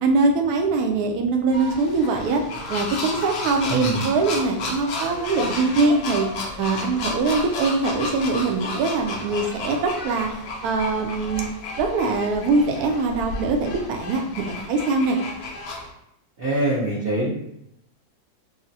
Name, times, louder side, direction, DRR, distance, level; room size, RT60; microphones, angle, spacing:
voice 1, 0.0-2.4 2.7-6.3 6.6-10.3 10.6-11.5 11.8-15.2, right 3 dB, 70° right, 3 dB, 0.9 m, -22 dB
sound 1, 1.5-15.9, left 2 dB, 70° left, 0.9 m, -32 dB
voice 2, 3.7-4.0 16.4-17.3, right 1 dB, 90° right, -7 dB, 0.5 m, -23 dB
3.6 x 2.1 x 2.7 m, 0.81 s
omnidirectional pair, 2.1 m